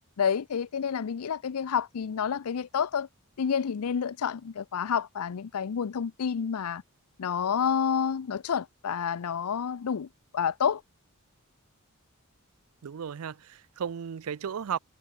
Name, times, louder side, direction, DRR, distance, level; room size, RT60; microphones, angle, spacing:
voice 1, 0.2-3.1 3.4-6.8 7.2-10.8, left 7 dB, 80° left, 0.5 m, -29 dB
voice 2, 12.8-14.8, right 7 dB, 75° right, 0.4 m, -34 dB
head